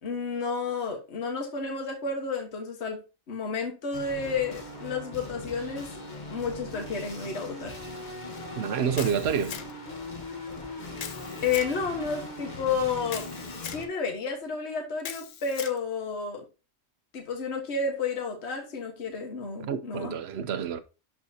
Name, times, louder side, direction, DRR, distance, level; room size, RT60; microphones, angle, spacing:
voice 1, 0.0-3.0 3.3-7.7 11.4-13.3 13.7-16.4 17.1-20.2, left 5 dB, 55° left, 1.6 m, -31 dB
sound 1, 3.9-13.9, left 2 dB, 35° left, 1.3 m, -40 dB
voice 2, 8.5-9.6 19.7-20.8, right 7 dB, 60° right, 0.8 m, -28 dB
Camera, 9.0-9.9 11.0-11.7 13.1-13.8 15.0-15.8, left 9 dB, 70° left, 1.0 m, -39 dB
11.0 x 4.4 x 2.7 m
omnidirectional pair, 1.4 m